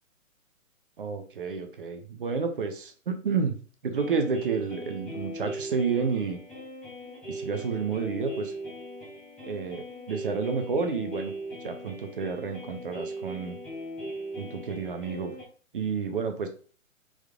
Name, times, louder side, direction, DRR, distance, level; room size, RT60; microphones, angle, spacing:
voice 1, 1.0-3.6 3.8-6.4 7.3-8.5 9.5-11.3 11.6-13.6 14.4-15.3 15.7-16.5, right 5 dB, 40° right, 6 dB, 0.7 m, -30 dB
sound 1, 3.9-15.4, right 1 dB, 5° left, 1.1 m, -39 dB
4.4 x 3.6 x 2.3 m, 0.40 s
figure-of-eight pair, 130°, 41 cm